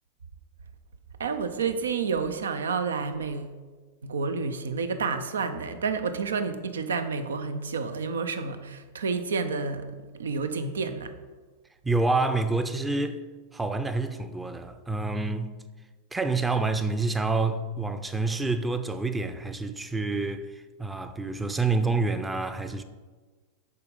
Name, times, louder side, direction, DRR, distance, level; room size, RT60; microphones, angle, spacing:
voice 1, 1.2-3.5 4.0-11.1, right 5 dB, 75° right, 0.5 m, -30 dB
voice 2, 11.8-13.2 13.5-15.5 16.1-22.8, right 3 dB, 10° right, 0.5 m, -28 dB
6.8 x 4.9 x 5.2 m
hypercardioid pair, 95°, 0 cm